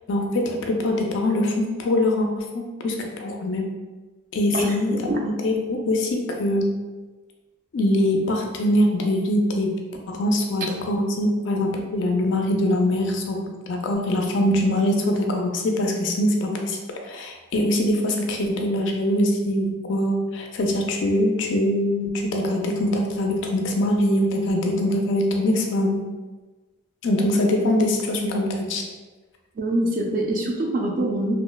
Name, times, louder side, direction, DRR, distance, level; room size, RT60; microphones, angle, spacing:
voice 1, 0.1-3.7 4.3-6.7 7.7-9.7 10.1-13.4 13.7-26.0 27.0-28.8, left 1 dB, 60° left, 2 dB, 0.4 m, -23 dB
voice 2, 29.6-31.3, right 1 dB, 40° right, 1 dB, 0.3 m, -24 dB
2.8 x 2.0 x 2.2 m, 1.2 s
head